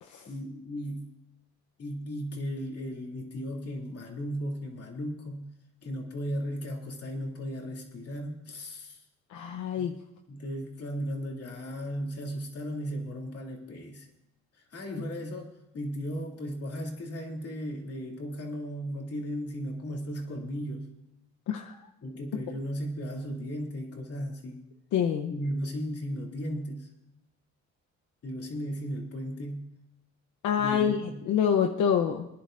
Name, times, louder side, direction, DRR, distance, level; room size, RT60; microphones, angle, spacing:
voice 1, 0.2-1.1 1.8-5.5 5.8-9.0 9.8-9.9 10.3-14.1 14.5-20.9 22.0-24.7 25.3-26.9 28.2-29.7 30.6-31.3, equal, 50° left, 0 dB, 2.7 m, -36 dB
voice 2, 9.3-9.9 21.5-21.9 24.9-25.3 30.4-32.3, left 8 dB, 80° left, 4 dB, 0.8 m, -27 dB
24.5 x 10.5 x 2.6 m, 0.86 s
cardioid pair, 90°, 30 cm